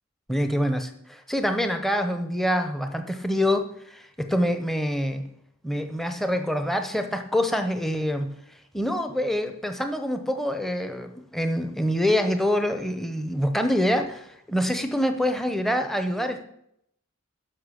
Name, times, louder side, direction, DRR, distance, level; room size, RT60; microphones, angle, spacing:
voice 1, 0.3-5.3 5.6-16.4, equal, ahead, 7 dB, 0.8 m, -26 dB
10.5 x 6.2 x 6.4 m, 0.74 s
head